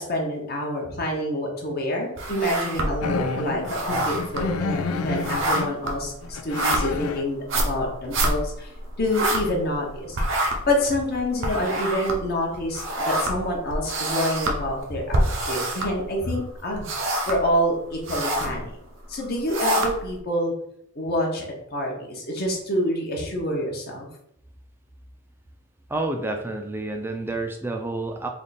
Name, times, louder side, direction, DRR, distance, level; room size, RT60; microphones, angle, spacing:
voice 1, 0.0-10.2 10.6-16.9 17.3-18.8 19.1-20.5 20.9-21.4 21.7-24.1, left 1 dB, 45° left, -1 dB, 0.8 m, -27 dB
sound 1, 2.2-3.2 3.5-9.9 10.1-16.4 16.7-17.5 17.9-18.6 19.2-20.2, right 1 dB, 55° right, 0.7 m, -27 dB
sound 2, 3.0-5.7 6.2-7.2 10.1-10.2 10.8-11.0, left 4 dB, 85° left, 0.4 m, -29 dB
voice 2, 25.9-28.3, right 2 dB, 10° right, 3 dB, 0.4 m, -29 dB
3.4 x 2.4 x 4.0 m, 0.77 s
head